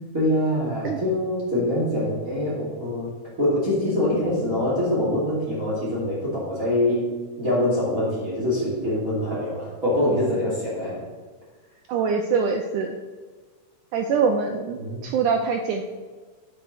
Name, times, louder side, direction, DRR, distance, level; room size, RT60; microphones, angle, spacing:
voice 1, 0.1-3.1 3.4-7.1 7.4-11.1 14.8-15.1, left 1 dB, 25° right, -8 dB, 3.1 m, -24 dB
voice 2, 11.9-12.9 13.9-15.8, right 5 dB, 90° right, 3 dB, 1.7 m, -24 dB
9.1 x 5.8 x 6.4 m, 1.4 s
omnidirectional pair, 4.5 m